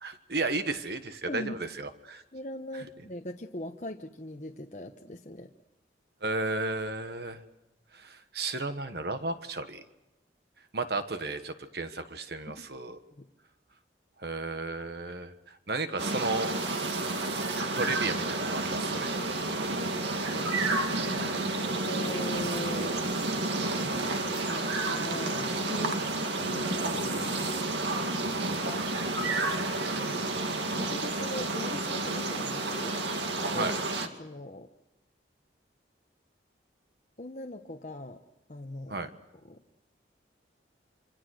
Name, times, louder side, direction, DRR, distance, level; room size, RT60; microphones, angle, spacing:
voice 1, 0.0-2.2 6.2-7.4 7.9-9.8 10.7-13.0 14.2-16.5 17.7-19.2 33.5-33.7 38.9-39.1, right 3 dB, 60° right, 9 dB, 1.4 m, -33 dB
voice 2, 2.3-5.5 13.1-13.2 21.1-23.0 24.1-26.0 26.4-27.3 30.8-33.0 33.4-33.8 34.2-34.7 37.2-38.2 38.5-39.1 39.4-39.6, left 1 dB, 40° left, 3 dB, 1.1 m, -40 dB
sound 1, 16.0-34.1, right 2 dB, 75° right, 2.2 m, -30 dB
26.5 x 26.0 x 6.5 m, 0.96 s
head